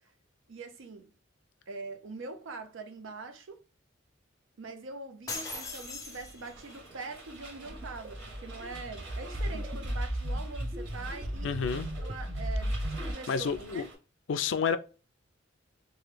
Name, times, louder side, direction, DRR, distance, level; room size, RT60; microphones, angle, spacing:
voice 1, 0.5-1.1 1.7-3.6 4.6-11.6 12.0-13.9, right 3 dB, 80° right, 0.6 m, -43 dB
sound 1, 5.3-6.7, left 3 dB, 20° left, 0.5 m, -39 dB
sound 2, 5.3-14.0, right 3 dB, 65° right, 1.6 m, -49 dB
sound 3, 7.4-13.1, equal, 40° right, 0.5 m, -35 dB
voice 2, 11.4-11.9 13.3-13.9 14.3-14.8, left 6 dB, 70° left, 0.4 m, -29 dB
3.0 x 2.2 x 3.2 m
head